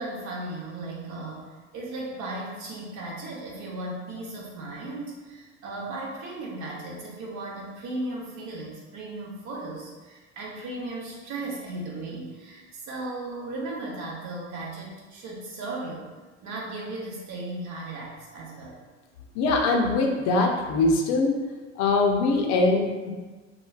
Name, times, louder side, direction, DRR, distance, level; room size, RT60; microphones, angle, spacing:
voice 1, 0.0-16.1 16.4-18.8, right 2 dB, 50° right, -3 dB, 0.9 m, -36 dB
voice 2, 19.3-21.4 21.8-23.1, left 3 dB, 45° left, 2 dB, 0.5 m, -22 dB
3.1 x 2.2 x 2.3 m, 1.3 s
hypercardioid pair, 75°, 36 cm